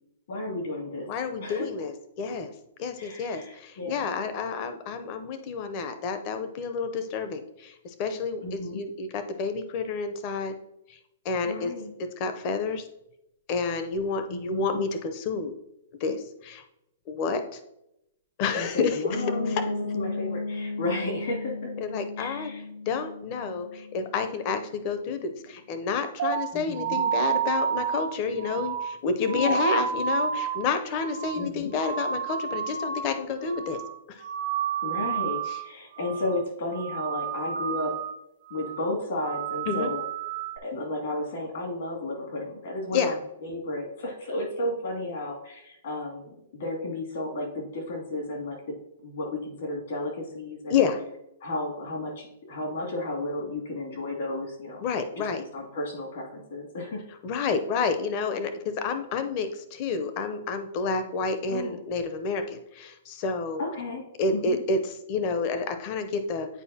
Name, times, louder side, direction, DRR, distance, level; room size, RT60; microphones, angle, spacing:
voice 1, 0.3-1.1 1.4-1.7 3.0-4.1 8.4-8.8 11.5-11.9 14.3-14.8 18.5-21.7 22.2-22.6 26.5-27.0 29.3-29.5 31.3-31.7 34.8-37.9 38.5-40.0 40.6-43.2 43.4-48.6 49.0-50.8 51.4-54.8 55.2-57.0 61.5-61.7 63.6-64.0 64.3-64.6, left 2 dB, 70° left, -1 dB, 2.4 m, -33 dB
voice 2, 1.1-2.5 2.8-10.5 10.9-11.0 11.2-11.7 12.0-12.9 13.5-15.5 16.0-16.6 17.1-17.6 18.4-19.6 21.8-22.5 22.9-33.8 34.1-34.2 35.5-35.6 39.7-39.9 42.9-43.2 50.7-51.0 54.8-55.4 57.2-63.6 64.2-66.5, left 4 dB, 35° left, 8 dB, 0.6 m, -29 dB
Piano, 19.1-24.8, left 3 dB, 85° left, 1.2 m, -35 dB
sound 1, 26.2-33.2 33.4-34.0 34.2-35.7 36.0-36.4 36.7-38.2 38.5-38.9 39.2-40.6, right 7 dB, 60° right, 0.4 m, -30 dB
9.1 x 4.4 x 2.8 m, 0.83 s
hypercardioid pair, 150°, 0 cm